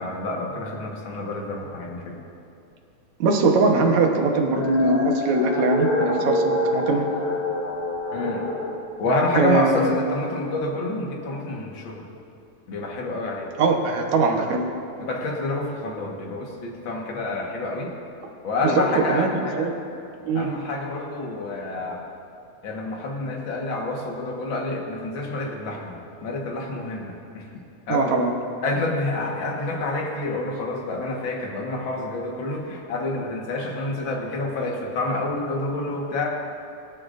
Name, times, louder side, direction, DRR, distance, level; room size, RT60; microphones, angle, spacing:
voice 1, 0.0-2.2 8.1-8.5 9.0-12.0 12.7-13.5 15.0-17.9 18.4-19.7 20.3-22.0 22.6-27.4 27.9-28.1 28.6-36.3, left 2 dB, 50° left, -1 dB, 1.9 m, -28 dB
voice 2, 3.2-7.1 9.3-9.9 13.6-14.6 18.6-19.7 20.3-20.5 27.9-28.3, right 4 dB, 70° right, 2 dB, 2.4 m, -21 dB
sound 1, 4.3-8.7, left 1 dB, 85° left, 3.3 m, -25 dB
23.0 x 10.5 x 2.6 m, 2.6 s
omnidirectional pair, 3.5 m